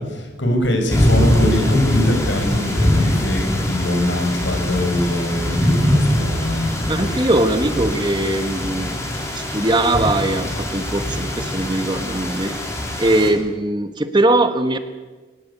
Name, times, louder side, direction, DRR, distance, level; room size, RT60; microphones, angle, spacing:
voice 1, 0.1-7.2, left 1 dB, 85° left, 3 dB, 6.3 m, -22 dB
sound 1, 0.9-13.3, left 1 dB, 15° left, 3.9 m, -22 dB
voice 2, 6.9-9.0 9.3-12.5 13.0-14.8, right 1 dB, 25° right, 9 dB, 1.4 m, -20 dB
24.0 x 18.0 x 8.8 m, 1.3 s
head